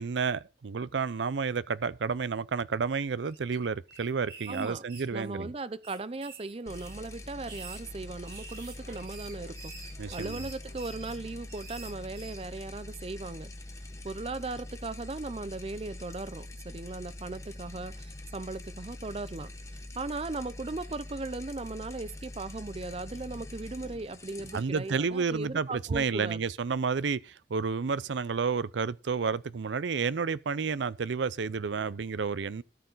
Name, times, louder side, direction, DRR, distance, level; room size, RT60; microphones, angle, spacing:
voice 1, 0.0-5.5 10.0-10.4 24.5-32.6, right 5 dB, 80° right, 0.5 m, -31 dB
sound 1, 2.9-3.6 3.9-5.5 5.8-7.0 7.4-12.4, right 4 dB, 65° right, 6.4 m, -48 dB
voice 2, 4.5-4.8 5.1-9.7 10.1-13.5 14.0-19.5 20.0-26.4, right 3 dB, 30° right, 0.5 m, -38 dB
sound 2, 6.7-25.9, left 1 dB, 15° left, 1.0 m, -44 dB
13.0 x 6.6 x 4.0 m
head